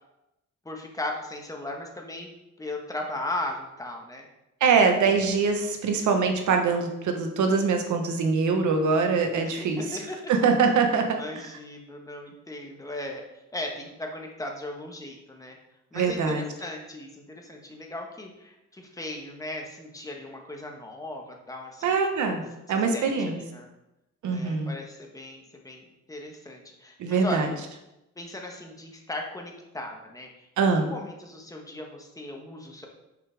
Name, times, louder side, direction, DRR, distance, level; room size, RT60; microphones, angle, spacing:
voice 1, 0.6-2.3 2.6-4.3 9.4-10.2 10.6-10.7 11.1-13.2 13.5-15.6 15.9-21.9 22.4-23.7 24.2-27.5 28.2-32.9, left 1 dB, 10° left, 1 dB, 1.3 m, -37 dB
voice 2, 4.6-9.8 10.3-11.2 15.9-16.4 21.8-22.4 22.7-23.4 24.2-24.7 27.0-27.5 30.6-30.9, right 5 dB, 75° right, 4 dB, 1.2 m, -23 dB
6.7 x 5.2 x 3.5 m, 0.92 s
cardioid pair, 90°, 30 cm